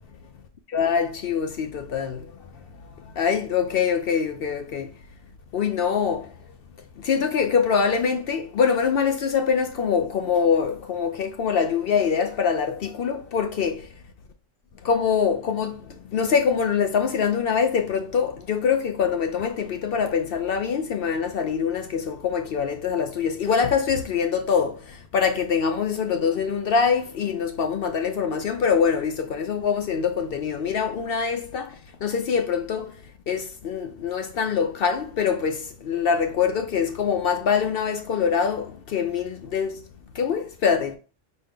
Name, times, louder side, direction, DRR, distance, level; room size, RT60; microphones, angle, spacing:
voice 1, 0.7-2.3 3.2-4.9 5.5-6.3 7.0-13.9 14.8-32.9 33.3-39.8 40.2-41.0, left 6 dB, 65° left, 0.6 m, -24 dB
5.2 x 2.2 x 3.5 m
omnidirectional pair, 1.3 m